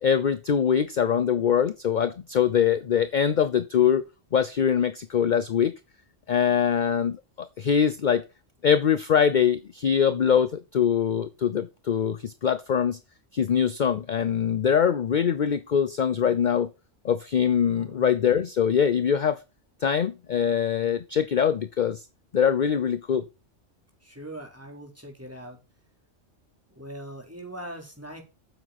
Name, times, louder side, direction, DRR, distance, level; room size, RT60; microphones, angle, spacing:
voice 1, 0.0-4.0 4.3-5.7 6.3-8.2 8.6-13.0 13.3-16.7 17.0-19.4 19.8-22.0 22.3-23.3, left 8 dB, 45° left, 0.7 m, -23 dB
voice 2, 17.8-18.1 24.0-25.6 26.7-28.2, right 1 dB, 10° right, 3.9 m, -41 dB
9.0 x 7.5 x 5.8 m
omnidirectional pair, 1.2 m